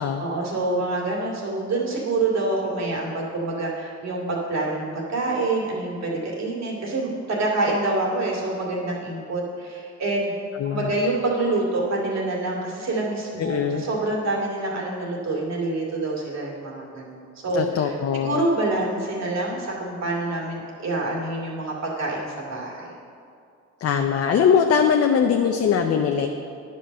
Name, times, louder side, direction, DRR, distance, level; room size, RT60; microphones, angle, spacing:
voice 1, 0.2-10.3 10.6-22.9, right 2 dB, 60° right, -3 dB, 2.3 m, -26 dB
voice 2, 13.4-13.8 17.5-18.4 23.8-26.3, left 7 dB, 50° left, 4 dB, 0.6 m, -21 dB
10.0 x 5.3 x 6.4 m, 2.4 s
cardioid pair, 90°, 30 cm